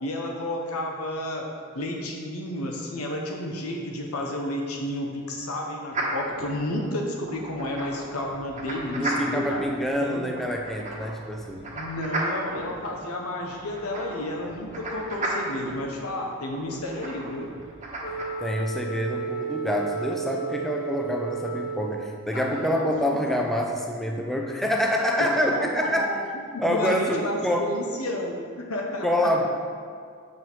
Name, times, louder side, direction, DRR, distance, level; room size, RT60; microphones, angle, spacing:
voice 1, 0.0-9.7 10.0-10.3 11.7-17.5 22.3-23.2 25.2-29.3, left 1 dB, 90° left, 1 dB, 1.0 m, -31 dB
sound 1, 5.9-18.3, right 1 dB, 35° right, 1.3 m, -35 dB
voice 2, 8.9-11.7 18.4-26.1 26.6-27.7 29.0-29.5, equal, ahead, 1 dB, 0.6 m, -26 dB
Wind instrument woodwind instrument, 18.0-22.4, right 6 dB, 45° left, 0.7 m, -33 dB
7.3 x 6.5 x 4.5 m, 2.1 s
head